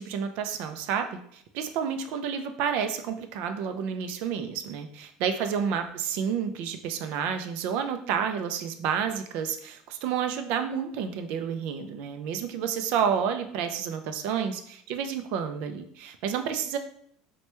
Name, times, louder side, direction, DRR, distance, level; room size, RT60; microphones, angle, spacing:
voice 1, 0.0-16.8, right 7 dB, 65° right, 7 dB, 0.3 m, -30 dB
3.2 x 2.2 x 2.9 m, 0.64 s
supercardioid pair, 135°, 3 cm